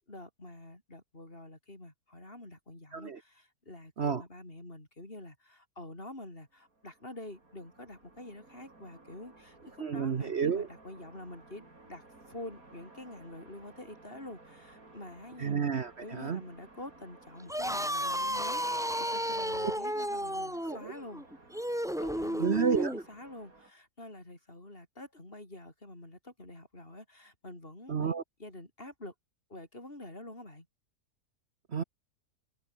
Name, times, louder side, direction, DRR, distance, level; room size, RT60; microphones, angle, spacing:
voice 1, 0.1-15.6 16.0-21.2 22.0-28.1 28.4-29.1 29.5-30.7, left 1 dB, 40° left, 5.6 m, -47 dB
sound 1, 6.5-23.7, right 2 dB, 70° right, 5.2 m, -57 dB
voice 2, 9.8-10.7 15.4-16.4 19.6-19.7 20.6-20.9 22.4-22.9 27.9-28.2 31.7-31.8, right 6 dB, 50° right, 1.3 m, -30 dB
sound 2, 17.4-23.0, equal, ahead, 1.9 m, -33 dB
omnidirectional pair, 1.6 m